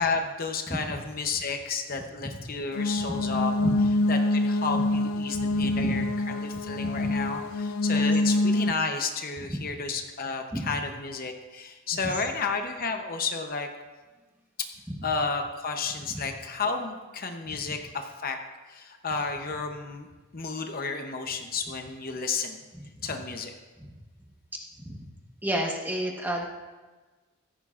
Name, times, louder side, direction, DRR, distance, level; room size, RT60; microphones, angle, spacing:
voice 1, 0.0-3.5 4.1-6.0 6.3-13.7 15.0-18.4 18.7-20.1 20.3-22.6 23.0-23.5, left 4 dB, 40° left, 5 dB, 0.8 m, -32 dB
voice 2, 0.7-1.0 2.2-2.4 3.0-3.8 4.7-4.8 5.3-6.0 6.5-7.2 7.9-8.1 9.5-9.6 10.5-10.7 11.9-12.2 14.9-15.0 16.0-16.2 17.5-17.8 22.8-23.2 23.8-23.9 24.5-25.0 25.4-26.5, equal, 10° right, 0 dB, 1.2 m, -34 dB
sound 1, 2.7-8.7, left 2 dB, 55° left, 0.4 m, -26 dB
16.0 x 13.5 x 2.5 m, 1.3 s
head